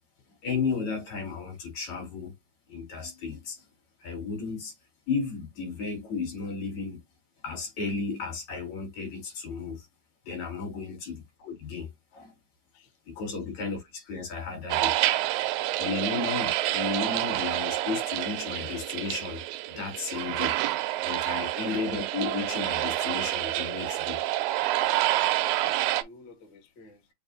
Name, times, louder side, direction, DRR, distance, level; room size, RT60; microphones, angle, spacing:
voice 1, 0.4-2.3 2.7-3.6 4.0-4.8 5.1-7.0 7.4-9.9 10.3-12.3 13.1-15.0 15.8-19.4 19.8-20.6 21.0-24.2, left 4 dB, 70° left, 3.9 m, -34 dB
voice 2, 12.7-13.4 21.4-21.6 24.7-27.1, left 2 dB, 45° left, 1.7 m, -54 dB
sound 1, 14.7-26.0, right 15 dB, 90° right, 2.0 m, -28 dB
6.8 x 2.7 x 2.7 m
omnidirectional pair, 3.3 m